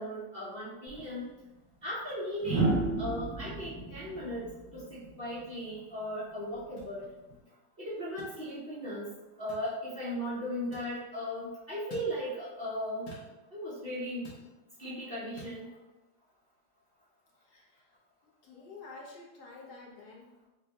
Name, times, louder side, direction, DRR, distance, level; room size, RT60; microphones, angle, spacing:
voice 1, 0.0-1.3 1.8-4.5 4.7-7.1 7.8-9.1 9.4-13.1 13.5-14.3 14.8-15.7, equal, 45° right, -9 dB, 0.9 m, -37 dB
sound 1, 0.9-1.0 2.4-5.5 7.0-7.3, right 3 dB, 5° right, 1.2 m, -32 dB
sound 2, 6.8-6.9 8.2-8.4 9.5-9.7 10.7-10.9 11.9-12.1 13.1-13.3 14.2-14.5 15.4-15.6, left 1 dB, 85° left, 1.6 m, -48 dB
voice 2, 17.4-17.9 18.4-20.5, left 3 dB, 70° left, -3 dB, 1.3 m, -50 dB
5.4 x 2.2 x 2.7 m, 1.1 s
omnidirectional pair, 1.8 m